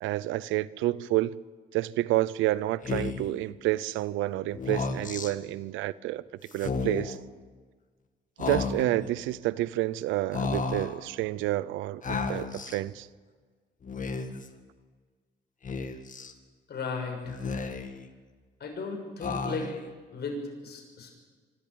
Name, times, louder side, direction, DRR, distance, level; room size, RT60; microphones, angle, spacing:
voice 1, 0.0-1.4 1.7-6.2 6.5-7.2 8.4-12.0 12.3-13.1, right 16 dB, 90° right, 0.7 m, -29 dB
Speech, 2.8-3.4 4.5-5.3 6.5-7.2 8.4-9.1 10.3-11.0 12.0-12.8 13.8-14.5 15.6-16.3 17.2-18.1 19.2-19.9, left 4 dB, 40° left, 2.0 m, -33 dB
voice 2, 16.7-17.4 18.6-19.7 20.1-21.1, left 4 dB, 55° left, 6.4 m, -35 dB
25.5 x 13.5 x 9.2 m
cardioid pair, 75°, 20 cm